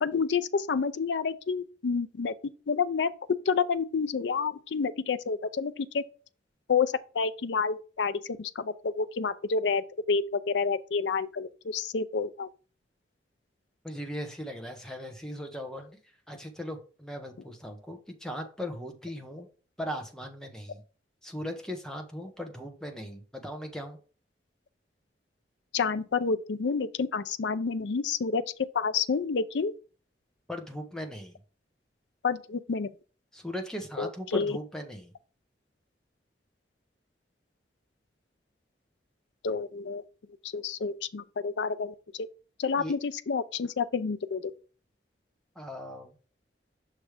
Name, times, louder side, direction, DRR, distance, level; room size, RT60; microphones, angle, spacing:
voice 1, 0.0-2.3 2.7-6.0 6.7-12.5 25.7-29.7 32.2-32.9 34.0-34.6 39.4-40.0 40.4-42.3 42.6-44.5, left 5 dB, 80° left, 0.5 m, -29 dB
voice 2, 13.8-15.9 16.3-19.5 19.8-20.8 21.2-24.0 30.5-31.4 33.3-35.1 42.8-42.9 45.6-46.1, equal, 5° left, 0.8 m, -38 dB
6.1 x 3.2 x 4.9 m
head